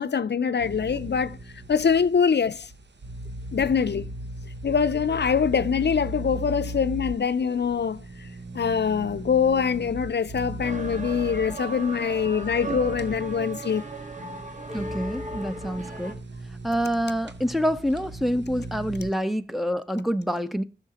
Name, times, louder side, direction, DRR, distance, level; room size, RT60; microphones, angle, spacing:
voice 1, 0.0-1.4 1.7-2.7 3.5-4.1 4.6-8.0 8.5-13.8, left 6 dB, 75° left, 0.4 m, -24 dB
sound 1, 0.6-19.1, right 1 dB, 85° right, 0.8 m, -38 dB
sound 2, 10.6-16.1, right 2 dB, 45° right, 1.5 m, -36 dB
voice 2, 14.7-16.2 16.6-20.6, equal, ahead, 0.6 m, -27 dB
14.5 x 6.4 x 2.8 m
wide cardioid pair, 60°, 18 cm